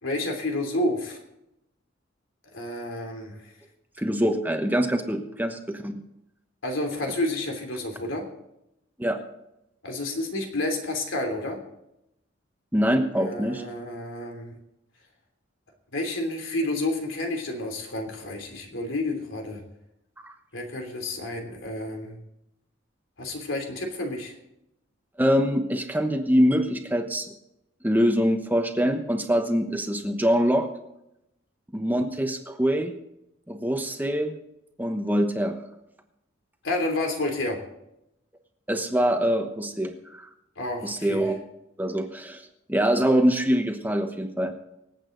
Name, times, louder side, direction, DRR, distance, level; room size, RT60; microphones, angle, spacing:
voice 1, 0.0-1.2 2.5-3.4 6.6-8.2 9.8-11.6 13.2-14.5 15.9-19.6 20.5-22.2 23.2-24.3 36.6-37.6 40.6-41.3, left 2 dB, 80° left, 3 dB, 3.1 m, -30 dB
voice 2, 4.0-6.0 9.0-9.2 12.7-13.6 20.2-20.3 25.2-27.3 27.8-30.7 31.7-32.9 33.5-34.3 34.8-35.5 38.7-40.3 40.8-41.4 41.8-44.5, equal, 10° right, 5 dB, 1.0 m, -24 dB
25.5 x 8.5 x 3.9 m, 0.85 s
head